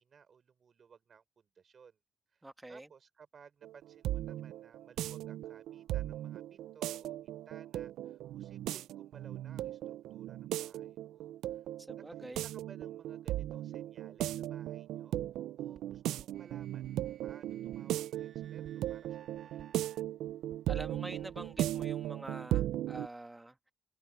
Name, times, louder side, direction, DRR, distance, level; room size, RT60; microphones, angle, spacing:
voice 1, 0.0-2.0 2.3-11.6 11.9-15.2 15.6-19.6, right 6 dB, 50° right, 4.9 m, -59 dB
voice 2, 2.4-2.9 11.8-12.4 20.7-23.7, right 2 dB, 15° right, 2.4 m, -46 dB
sound 1, 3.6-23.1, right 13 dB, 85° right, 0.6 m, -37 dB
sound 2, 15.7-21.9, right 8 dB, 65° right, 3.6 m, -59 dB
cardioid pair, 90°, 0 cm